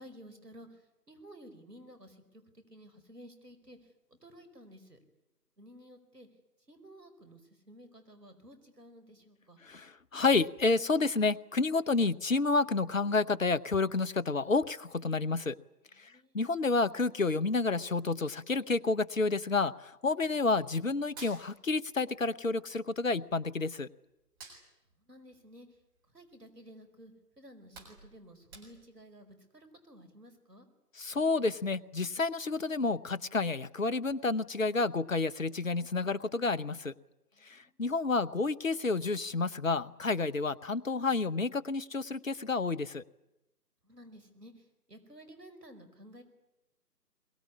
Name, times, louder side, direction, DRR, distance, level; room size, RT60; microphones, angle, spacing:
voice 1, 0.0-5.0 5.6-6.3 6.7-9.6 16.0-16.4 25.0-25.8 26.1-30.7 37.3-37.9 43.8-46.2, equal, 70° right, 9 dB, 5.1 m, -54 dB
voice 2, 9.6-15.6 16.0-23.9 31.0-36.9 37.5-43.0, left 3 dB, 50° left, 16 dB, 0.8 m, -30 dB
Hands, 21.1-22.3 22.5-23.8 24.2-26.5 26.9-27.1 27.4-29.1, right 3 dB, 15° right, 4.1 m, -53 dB
22.0 x 22.0 x 9.7 m, 0.99 s
figure-of-eight pair, 160°, 49 cm